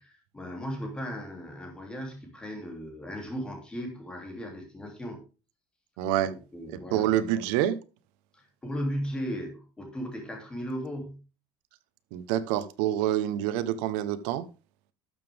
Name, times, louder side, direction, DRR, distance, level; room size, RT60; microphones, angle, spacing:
voice 1, 0.0-5.2 6.2-7.1 8.3-11.2, equal, 10° left, 2.9 m, -36 dB
voice 2, 6.0-6.3 6.9-7.8 12.1-14.4, right 12 dB, 75° right, 1.1 m, -27 dB
12.0 x 7.2 x 3.5 m
cardioid pair, 165°, 9 cm